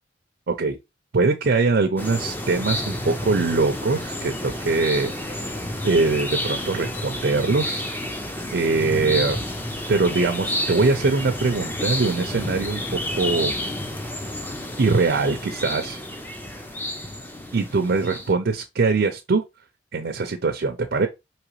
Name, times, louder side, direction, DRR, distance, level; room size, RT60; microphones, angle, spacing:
voice 1, 0.5-0.8 1.1-5.1 5.8-7.9 8.5-9.5 9.9-13.6 14.8-16.0 17.5-19.4 19.9-21.1, right 3 dB, 55° right, 0.5 m, -22 dB
sound 1, 2.0-18.3, left 1 dB, 10° left, 0.5 m, -30 dB
4.9 x 3.0 x 3.0 m
head